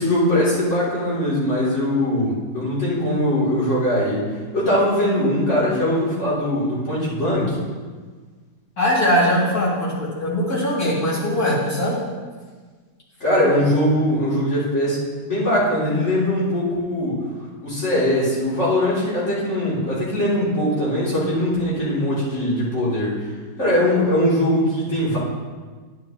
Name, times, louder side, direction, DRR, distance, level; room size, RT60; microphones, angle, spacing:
voice 1, 0.0-4.3 4.5-7.6 13.2-17.3 17.6-23.3 23.6-25.2, left 1 dB, 45° left, -9 dB, 3.4 m, -21 dB
voice 2, 8.8-12.0, equal, 65° left, -7 dB, 3.2 m, -21 dB
11.0 x 9.5 x 3.0 m, 1.4 s
omnidirectional pair, 1.7 m